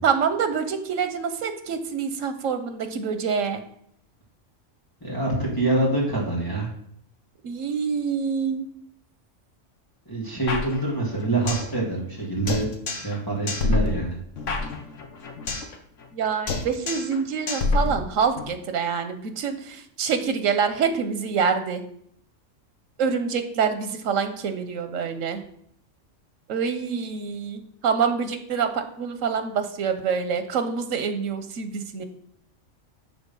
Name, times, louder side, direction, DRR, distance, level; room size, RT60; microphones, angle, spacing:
voice 1, 0.0-3.6 7.4-8.7 16.1-21.8 23.0-25.4 26.5-32.0, right 6 dB, 85° right, 9 dB, 1.2 m, -26 dB
voice 2, 5.0-6.7 10.1-12.7 12.9-14.2, right 2 dB, 15° left, -5 dB, 2.2 m, -25 dB
sound 1, 10.5-11.7 12.0-12.1 12.5-13.2 13.5-15.7 16.0-16.2 16.5-17.2 17.5-18.5, left 3 dB, 70° left, 1.4 m, -27 dB
11.0 x 3.8 x 5.4 m, 0.69 s
omnidirectional pair, 1.3 m